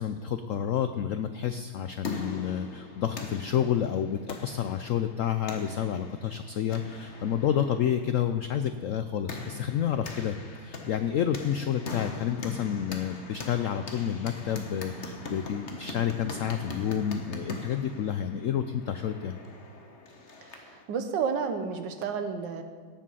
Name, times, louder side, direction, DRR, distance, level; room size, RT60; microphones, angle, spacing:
voice 1, 0.0-10.4 10.6-19.4, left 9 dB, 85° left, 9 dB, 0.7 m, -29 dB
sound 1, 1.6-20.8, left 3 dB, 40° left, 1.4 m, -42 dB
voice 2, 20.4-22.6, right 6 dB, 75° right, 7 dB, 1.7 m, -31 dB
17.5 x 7.5 x 5.6 m, 1.5 s
omnidirectional pair, 2.0 m